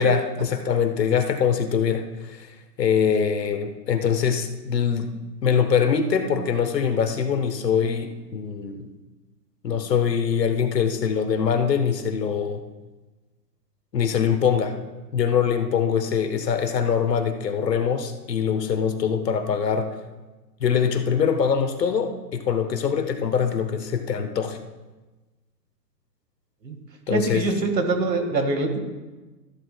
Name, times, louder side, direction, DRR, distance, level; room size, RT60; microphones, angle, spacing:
voice 1, 0.0-2.5 2.8-5.1 5.4-8.9 9.6-12.6 13.9-14.8 15.1-19.9 20.6-24.6 27.1-27.5, left 7 dB, 75° left, 7 dB, 1.2 m, -23 dB
voice 2, 27.1-28.8, right 3 dB, 80° right, 6 dB, 1.8 m, -24 dB
13.5 x 11.5 x 2.2 m, 1.2 s
hypercardioid pair, 130°, 50 cm